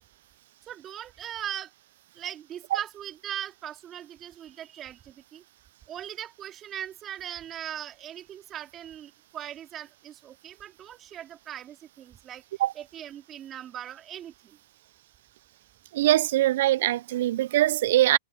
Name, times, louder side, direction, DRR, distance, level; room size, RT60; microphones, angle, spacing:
voice 1, 0.6-1.7 2.1-5.4 5.9-12.4 12.7-14.6, right 10 dB, 35° right, 3.0 m, -39 dB
voice 2, 15.9-18.2, right 14 dB, 65° right, 0.5 m, -22 dB
hypercardioid pair, 105°, 0 cm